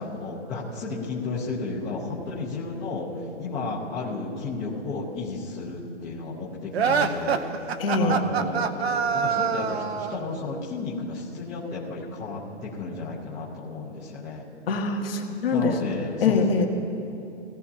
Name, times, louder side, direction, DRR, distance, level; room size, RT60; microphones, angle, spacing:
voice 1, 0.0-3.1 3.4-7.4 8.0-14.4 15.5-16.4, left 3 dB, 10° left, -7 dB, 0.8 m, -33 dB
sound 1, 6.7-10.3, right 6 dB, 60° right, 0.8 m, -25 dB
voice 2, 7.8-8.2 14.7-15.9 16.2-16.7, left 4 dB, 50° left, 2 dB, 1.5 m, -23 dB
17.5 x 13.5 x 2.8 m, 2.7 s
hypercardioid pair, 165°, 36 cm